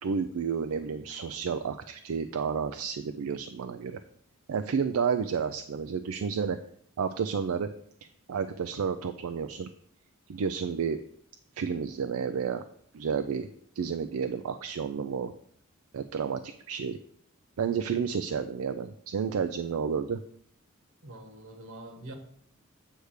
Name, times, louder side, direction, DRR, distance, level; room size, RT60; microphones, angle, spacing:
voice 1, 0.0-4.0 4.5-6.6 7.0-7.7 8.3-9.7 10.3-11.0 11.6-12.6 12.9-13.5 13.8-15.3 15.9-17.0 17.6-20.2, right 6 dB, 85° right, 8 dB, 0.4 m, -31 dB
voice 2, 21.0-22.1, right 1 dB, 70° right, 5 dB, 1.4 m, -44 dB
8.1 x 3.4 x 6.4 m, 0.64 s
head